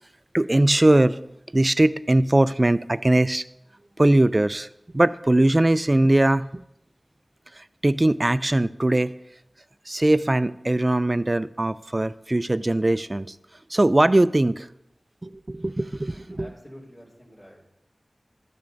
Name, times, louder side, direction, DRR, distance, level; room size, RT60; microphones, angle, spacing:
voice 1, 0.3-1.2 1.5-3.4 4.0-4.7 4.9-6.6 7.5-9.1 9.9-13.4 13.7-14.7 15.2-16.5, right 1 dB, 35° right, 15 dB, 0.3 m, -20 dB
voice 2, 16.4-17.6, equal, 45° left, -6 dB, 2.9 m, -47 dB
12.5 x 8.8 x 2.6 m, 0.84 s
wide cardioid pair, 55°, 0 cm